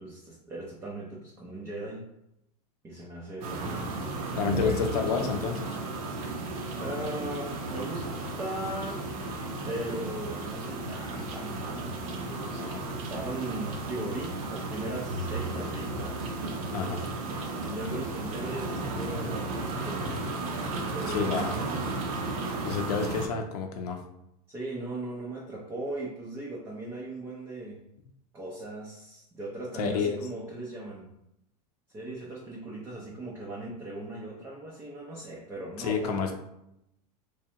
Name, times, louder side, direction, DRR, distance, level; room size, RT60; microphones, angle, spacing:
voice 1, 0.0-2.0 2.8-4.1 4.5-4.9 6.8-8.1 8.4-9.1 9.6-11.9 12.3-12.6 13.1-16.2 17.5-20.3 20.9-22.0 24.5-27.8 28.3-31.1 31.9-36.3, right 2 dB, 10° right, -4 dB, 0.4 m, -38 dB
sound 1, 3.4-23.3, right 2 dB, 60° right, 0.8 m, -34 dB
voice 2, 4.4-5.6 12.6-12.8 16.7-17.0 21.1-21.6 22.6-24.0 29.8-30.2 35.8-36.3, left 6 dB, 80° left, 4 dB, 0.6 m, -29 dB
3.5 x 3.2 x 2.8 m, 0.81 s
supercardioid pair, 160°, 20 cm